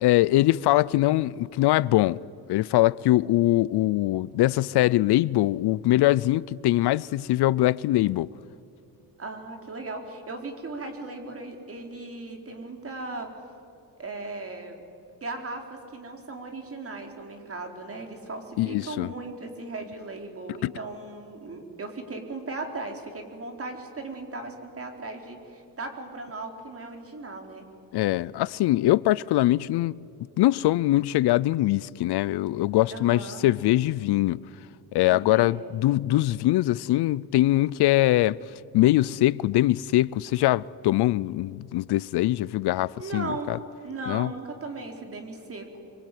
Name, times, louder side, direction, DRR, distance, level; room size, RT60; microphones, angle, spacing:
voice 1, 0.0-2.2 2.5-8.3 18.6-19.1 20.6-20.7 27.9-30.0 30.4-34.4 34.9-38.4 38.7-43.6 44.1-44.3, left 16 dB, 75° left, 0.6 m, -22 dB
voice 2, 9.2-13.3 14.0-14.8 15.2-27.6 32.9-33.5 35.1-35.7 43.0-43.5 43.8-45.8, right 3 dB, 35° right, 4.4 m, -37 dB
25.0 x 25.0 x 9.4 m
cardioid pair, 115°, 40 cm